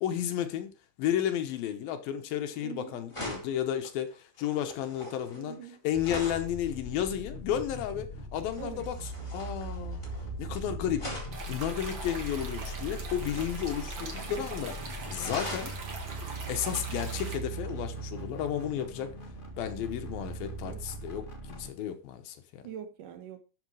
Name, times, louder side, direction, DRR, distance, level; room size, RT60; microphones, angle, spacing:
voice 1, 0.0-0.7 1.0-5.6 5.8-9.0 9.3-10.0 10.4-11.1 11.5-15.7 16.2-19.1 19.6-22.6, left 10 dB, 75° left, 2.7 m, -33 dB
sound 1, 2.5-2.7 3.1-6.5 8.5-10.6 10.9-12.5 13.2-14.4 14.7-14.8 15.1-15.8 17.6-17.8, left 1 dB, 10° left, 3.3 m, -42 dB
voice 2, 2.6-3.0 5.3-5.8 8.6-8.8 20.4-20.8 22.6-23.4, right 10 dB, 70° right, 2.4 m, -43 dB
sound 2, 5.9-21.7, right 2 dB, 30° left, 0.9 m, -40 dB
sound 3, 11.3-17.4, right 4 dB, 40° right, 1.9 m, -42 dB
12.5 x 6.4 x 4.8 m
omnidirectional pair, 4.4 m